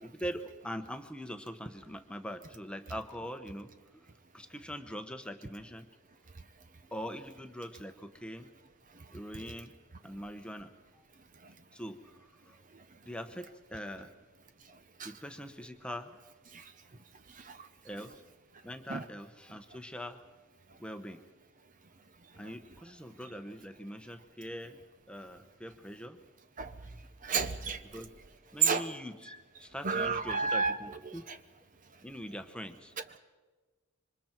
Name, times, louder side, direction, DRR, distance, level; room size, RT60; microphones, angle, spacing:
voice 1, 0.0-4.0 4.3-5.9 6.9-8.5 9.1-9.7 10.0-10.7 11.7-12.0 12.5-12.6 13.0-14.1 15.0-16.2 17.8-18.2 18.6-20.2 20.8-21.2 22.4-24.8 25.1-26.2 27.9-28.1 28.5-29.3 29.6-31.2 32.0-32.9, equal, 5° left, 7 dB, 1.0 m, -42 dB
voice 2, 17.4-17.7 18.9-19.0 26.6-26.7 27.2-27.8 28.6-28.9 29.8-30.8 31.0-31.4, right 5 dB, 35° right, 10 dB, 0.8 m, -31 dB
27.0 x 24.5 x 4.6 m, 1.3 s
head